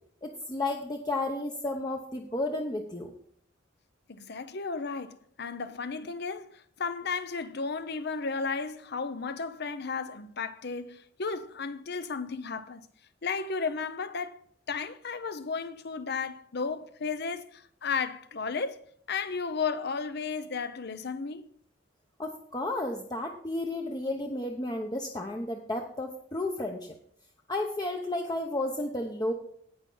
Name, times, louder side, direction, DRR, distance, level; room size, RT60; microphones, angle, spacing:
voice 1, 0.2-3.1 22.2-26.9 27.5-29.3, left 2 dB, 20° left, 0.9 m, -32 dB
voice 2, 4.1-12.9 13.2-14.4 14.7-18.8 19.1-21.5, left 5 dB, 55° left, 0.8 m, -34 dB
17.5 x 5.9 x 3.9 m
head